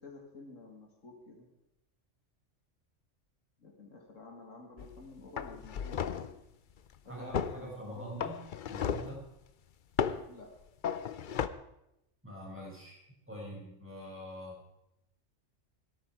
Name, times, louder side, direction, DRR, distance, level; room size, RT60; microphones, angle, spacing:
voice 1, 0.0-1.5 3.6-6.2 7.0-8.2 10.3-10.5, left 3 dB, 85° left, 1 dB, 2.6 m, -50 dB
sound 1, 4.8-5.0 5.4-6.4 7.3-7.6 8.2-9.2 10.0-10.3 10.8-11.5, left 8 dB, 50° left, 0.7 m, -34 dB
voice 2, 7.0-8.4 8.7-9.2 12.2-13.0 13.3-14.6, equal, 10° right, -4 dB, 6.5 m, -44 dB
18.0 x 13.0 x 4.8 m, 0.86 s
omnidirectional pair, 1.3 m